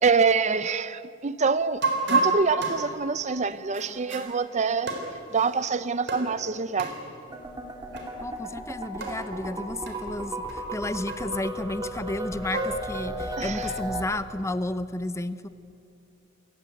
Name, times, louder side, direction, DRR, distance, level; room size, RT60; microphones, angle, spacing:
voice 1, 0.0-1.8 2.1-4.9 5.3-6.9 13.4-13.7, right 5 dB, 35° right, 0.6 m, -25 dB
sound 1, 1.8-4.4 4.9-5.5 6.1-6.3 6.8-7.0 7.9-8.1 8.4-8.5 9.0-9.2 9.9-10.0 10.5-10.6 11.1-11.5 12.1-12.9, right 3 dB, 55° right, 3.7 m, -29 dB
sound 2, 7.3-14.0, right 1 dB, 20° right, 2.2 m, -35 dB
voice 2, 8.2-15.5, left 1 dB, 15° left, 0.6 m, -32 dB
26.5 x 15.5 x 9.0 m
head